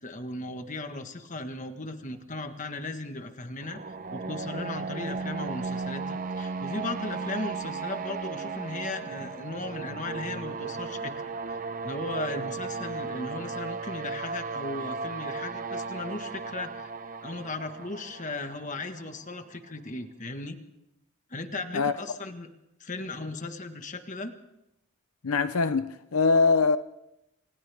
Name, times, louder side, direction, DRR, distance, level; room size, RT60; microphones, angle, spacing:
voice 1, 0.0-3.8 4.1-16.9 17.2-20.6 21.3-22.5 22.8-24.3, left 2 dB, 35° left, 1.6 m, -37 dB
sound 1, 3.6-19.4, right 4 dB, 35° right, 0.8 m, -35 dB
voice 2, 25.2-26.8, left 4 dB, 85° left, 0.8 m, -23 dB
29.5 x 27.0 x 3.6 m
head